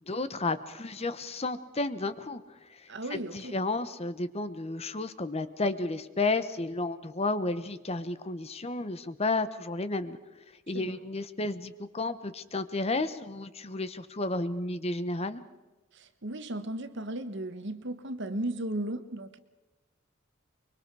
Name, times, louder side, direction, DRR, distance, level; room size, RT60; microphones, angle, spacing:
voice 1, 0.1-10.2 10.7-15.4, left 2 dB, 30° left, 13 dB, 0.9 m, -32 dB
voice 2, 2.9-3.6 10.7-11.0 15.9-19.4, right 1 dB, 60° right, 10 dB, 1.3 m, -36 dB
24.5 x 23.0 x 4.7 m, 1.1 s
head